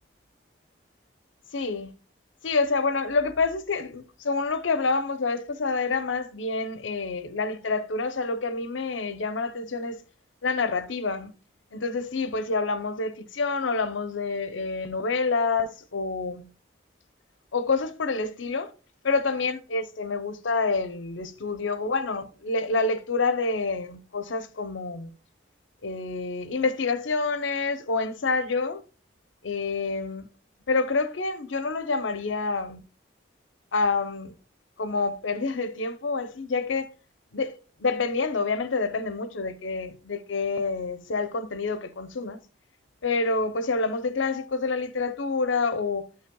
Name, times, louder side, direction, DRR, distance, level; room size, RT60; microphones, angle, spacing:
voice 1, 1.5-1.9 2.4-10.0 10.4-11.3 11.7-16.5 17.5-18.7 19.0-25.1 25.8-28.8 29.4-30.3 30.7-32.8 33.7-34.3 34.8-36.9 37.3-42.4 43.0-46.1, left 4 dB, 80° left, 0.7 m, -27 dB
12.0 x 5.6 x 2.3 m
head